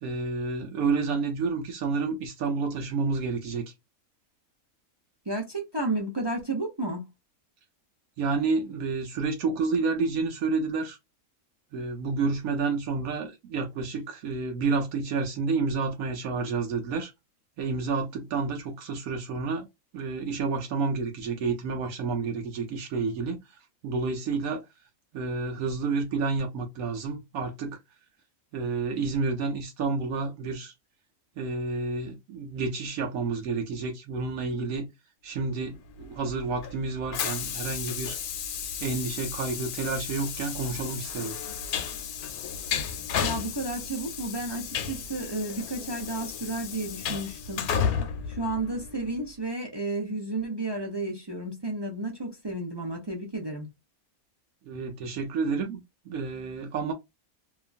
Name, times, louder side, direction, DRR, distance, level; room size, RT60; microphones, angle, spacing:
voice 1, 0.0-3.7 8.2-11.0 11.7-17.1 17.6-19.7 19.9-24.6 25.1-27.8 28.5-30.7 31.4-34.9 35.2-38.2 38.8-41.4 54.7-56.9, right 4 dB, 80° right, 1.1 m, -30 dB
voice 2, 5.3-7.0 43.2-47.7 48.3-53.7, right 2 dB, 35° right, 0.4 m, -32 dB
Train, 36.0-49.2, left 7 dB, 90° left, 1.1 m, -33 dB
2.8 x 2.4 x 2.3 m
omnidirectional pair, 1.5 m